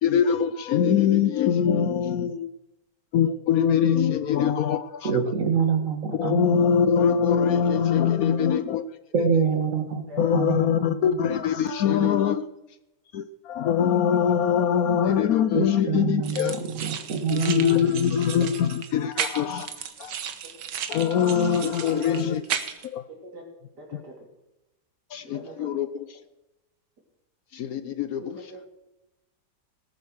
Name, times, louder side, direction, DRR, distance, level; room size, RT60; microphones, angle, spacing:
voice 1, 0.0-2.5 3.1-5.1 6.1-8.9 10.2-12.4 13.1-16.6 17.3-20.1 20.9-22.6 22.9-23.0 23.9-24.0 25.1-26.2 27.5-28.4, left 8 dB, 65° left, 13 dB, 1.0 m, -23 dB
voice 2, 5.0-6.8 9.1-10.0 10.3-10.9 15.5-17.9, right 6 dB, 50° right, 6 dB, 2.1 m, -26 dB
voice 3, 10.1-10.5 14.0-14.1 23.1-23.4 23.8-24.1 25.2-25.7 28.2-28.6, equal, 70° right, 0 dB, 4.2 m, -42 dB
sound 1, 16.2-22.9, right 8 dB, 85° right, 1.7 m, -34 dB
18.5 x 8.3 x 6.4 m, 0.97 s
omnidirectional pair, 1.8 m